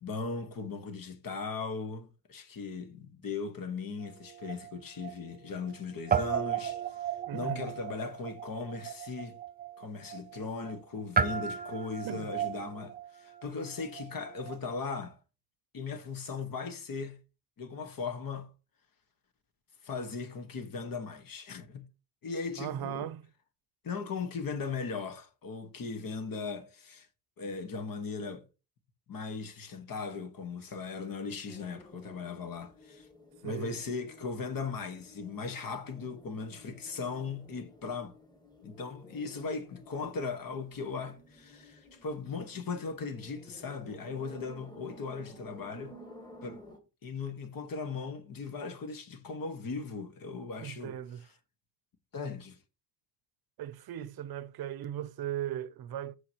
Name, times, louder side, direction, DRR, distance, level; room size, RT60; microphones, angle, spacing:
voice 1, 0.0-9.4 9.8-15.2 15.7-17.2 17.6-18.5 19.8-21.9 22.2-23.1 23.8-27.1 27.4-28.4 29.1-33.1 33.4-38.1 38.6-45.9 46.4-46.6 47.0-51.0 52.1-52.6, left 4 dB, 60° left, 1.5 m, -38 dB
Guitar, 4.0-5.8 6.1-14.7, right 7 dB, 25° right, 0.5 m, -35 dB
voice 2, 7.3-7.7 12.0-12.3 22.6-23.3 33.4-33.8 50.6-51.2 53.6-56.2, right 11 dB, 70° right, 0.6 m, -38 dB
sound 1, 31.5-46.8, left 1 dB, 10° left, 1.6 m, -53 dB
14.5 x 4.9 x 2.9 m
wide cardioid pair, 130°, 38 cm